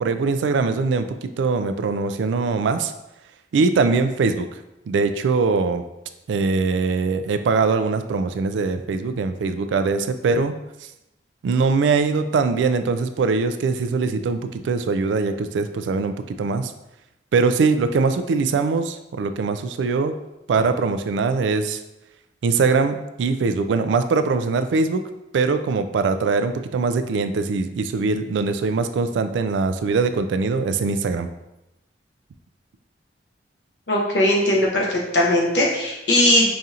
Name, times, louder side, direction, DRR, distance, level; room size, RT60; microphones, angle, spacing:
voice 1, 0.0-2.9 3.5-4.5 4.9-5.8 6.3-10.5 11.4-16.7 17.3-20.2 20.5-21.8 22.4-25.0 25.3-31.3, right 4 dB, 90° right, 9 dB, 0.3 m, -22 dB
voice 2, 33.9-36.5, left 1 dB, 75° left, -2 dB, 0.9 m, -19 dB
5.1 x 2.4 x 2.8 m, 0.92 s
head